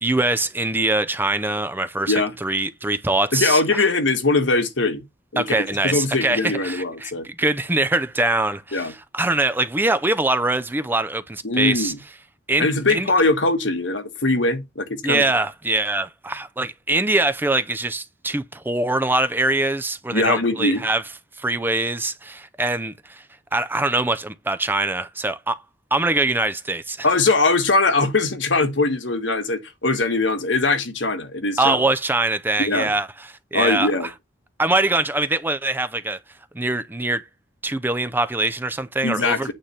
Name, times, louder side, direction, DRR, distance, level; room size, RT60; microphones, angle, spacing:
voice 1, 0.0-3.6 5.4-11.9 12.5-13.1 15.0-21.0 21.4-23.2 23.5-25.6 25.9-27.1 31.6-34.1 34.6-36.2 36.5-37.2 37.6-39.5, right 2 dB, 10° right, 0.5 m, -23 dB
voice 2, 3.3-5.0 5.3-7.3 8.7-8.9 11.4-12.0 12.6-15.2 20.1-20.8 27.0-31.8 32.6-32.9 33.5-34.1 39.0-39.5, left 3 dB, 75° left, 1.4 m, -21 dB
9.0 x 3.3 x 5.6 m
head